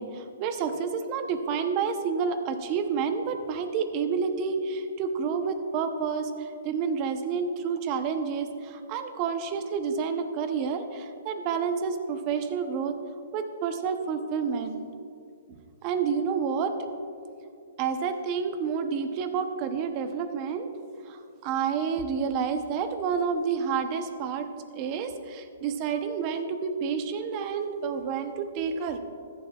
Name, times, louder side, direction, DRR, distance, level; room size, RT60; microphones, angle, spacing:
voice 1, 0.0-13.0 13.3-14.8 15.8-16.9 17.8-20.7 21.1-29.0, right 6 dB, 35° right, 8 dB, 0.8 m, -29 dB
14.0 x 11.0 x 2.4 m, 2.5 s
hypercardioid pair, 145°, 0 cm